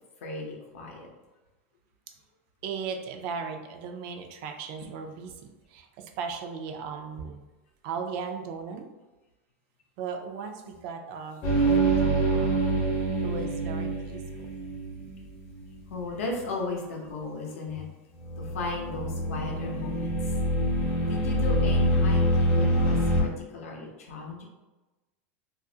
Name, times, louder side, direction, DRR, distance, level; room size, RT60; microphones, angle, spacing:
voice 1, 0.2-1.1 15.9-17.9 18.4-20.3 21.1-24.4, left 3 dB, 85° left, 0 dB, 0.6 m, -36 dB
voice 2, 2.6-7.4 7.8-8.9 10.0-12.6 13.2-14.5, right 5 dB, 55° right, 5 dB, 0.3 m, -37 dB
sound 1, 11.4-15.7 18.2-23.2, right 1 dB, 45° left, 0.7 m, -25 dB
2.4 x 2.0 x 2.6 m, 1.1 s
supercardioid pair, 130°, 7 cm